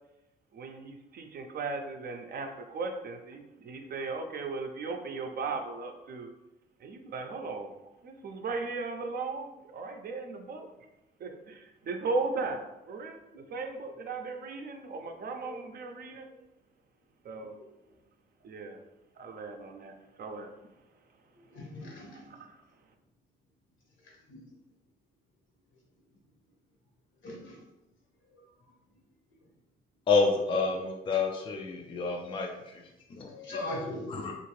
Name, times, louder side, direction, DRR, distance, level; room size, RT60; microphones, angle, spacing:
voice 1, 0.5-6.3 6.8-7.8 8.0-10.7 11.2-13.2 13.5-16.3 17.2-17.6 18.4-18.8 19.2-20.5 22.1-22.6, right 3 dB, 50° right, 4 dB, 0.5 m, -37 dB
voice 2, 15.2-15.6 21.5-22.3 24.3-24.4 27.2-27.6 33.3-34.1, left 1 dB, 75° left, -3 dB, 1.2 m, -39 dB
voice 3, 30.1-32.7 33.1-33.6 34.1-34.3, left 4 dB, 25° left, 1 dB, 0.4 m, -29 dB
2.7 x 2.5 x 3.1 m, 0.94 s
cardioid pair, 90°, 20 cm